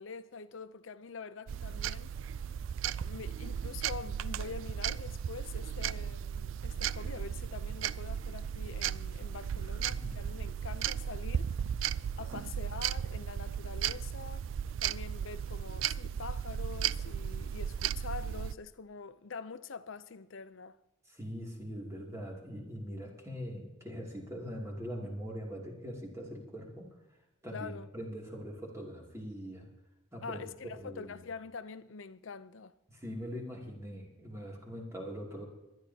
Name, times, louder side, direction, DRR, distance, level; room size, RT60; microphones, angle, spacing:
voice 1, 0.0-2.1 3.0-11.6 12.2-14.5 14.8-20.8 27.5-27.9 30.2-32.7, left 5 dB, 70° left, 0.6 m, -45 dB
sound 1, 1.5-18.5, right 9 dB, 70° right, 0.3 m, -35 dB
voice 2, 9.5-10.2 12.4-12.7 21.1-27.2 27.4-29.7 30.1-31.2 32.9-35.5, equal, 15° right, 2.6 m, -42 dB
23.0 x 11.0 x 2.8 m
head